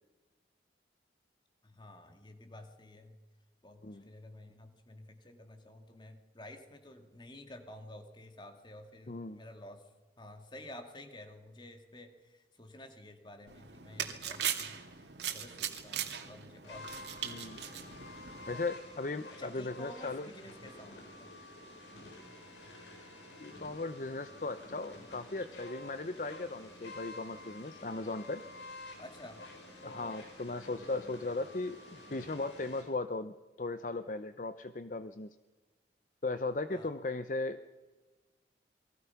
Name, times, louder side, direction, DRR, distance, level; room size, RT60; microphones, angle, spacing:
voice 1, 1.6-3.2 3.6-18.0 18.4-18.6 19.3-21.3 29.0-29.4 29.8-30.1 36.7-36.9, left 1 dB, 25° left, 6 dB, 2.3 m, -52 dB
voice 2, 9.1-9.4 17.2-17.6 18.5-20.3 23.4-28.4 29.8-35.3 36.2-37.6, left 3 dB, 45° left, 11 dB, 0.7 m, -37 dB
sound 1, 13.5-18.7, right 9 dB, 75° right, 2.4 m, -39 dB
sound 2, 16.6-32.8, left 2 dB, 90° left, 7.2 m, -50 dB
28.5 x 22.5 x 5.9 m, 1.3 s
head